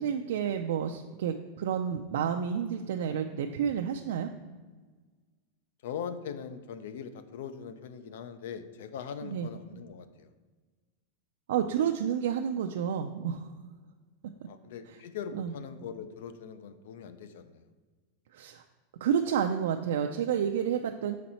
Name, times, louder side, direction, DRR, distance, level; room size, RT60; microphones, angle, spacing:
voice 1, 0.0-4.3 9.2-9.5 11.5-13.5 14.9-15.0 15.3-15.5 18.3-18.6 19.0-21.2, right 8 dB, 75° right, 4 dB, 0.3 m, -30 dB
voice 2, 3.9-4.3 5.8-10.3 14.5-17.6, left 7 dB, 70° left, 11 dB, 0.5 m, -41 dB
6.4 x 4.1 x 4.3 m, 1.4 s
supercardioid pair, 165°, 0 cm